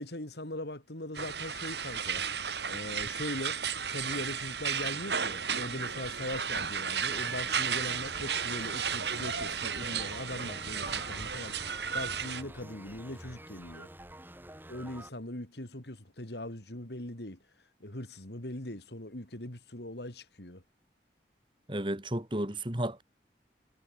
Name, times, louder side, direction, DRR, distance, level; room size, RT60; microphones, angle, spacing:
voice 1, 0.0-2.3 2.7-3.6 3.9-11.5 11.9-13.9 14.7-17.4 17.8-20.6, left 1 dB, 70° left, 3.7 m, -40 dB
sound 1, 1.1-12.4, right 7 dB, 75° right, 6.7 m, -34 dB
sound 2, 7.1-15.1, right 1 dB, 10° right, 7.3 m, -49 dB
voice 2, 21.7-23.0, right 1 dB, 30° right, 2.7 m, -32 dB
head